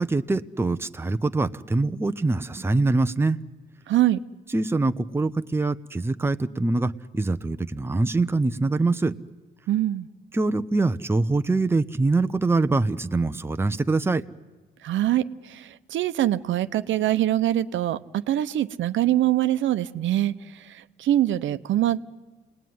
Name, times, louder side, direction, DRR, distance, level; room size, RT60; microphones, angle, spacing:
voice 1, 0.0-3.4 4.5-9.2 10.3-14.2, right 3 dB, 10° right, 9 dB, 0.7 m, -24 dB
voice 2, 3.9-4.2 9.7-10.1 14.8-22.0, right 13 dB, 75° right, 11 dB, 0.9 m, -24 dB
29.5 x 20.0 x 9.5 m, 1.3 s
cardioid pair, 90°, 20 cm